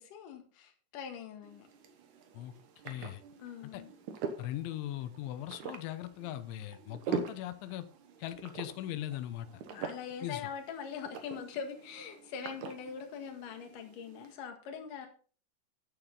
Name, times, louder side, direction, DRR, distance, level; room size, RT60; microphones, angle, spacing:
voice 1, 0.0-1.7 3.4-3.9 9.7-15.1, left 7 dB, 55° left, 3.0 m, -42 dB
sound 1, 1.4-14.3, right 6 dB, 65° right, 1.9 m, -44 dB
voice 2, 2.9-3.2 3.7-3.8 4.4-7.9 8.2-9.5 10.2-10.4, left 13 dB, 90° left, 3.3 m, -39 dB
11.5 x 8.9 x 3.9 m
omnidirectional pair, 5.2 m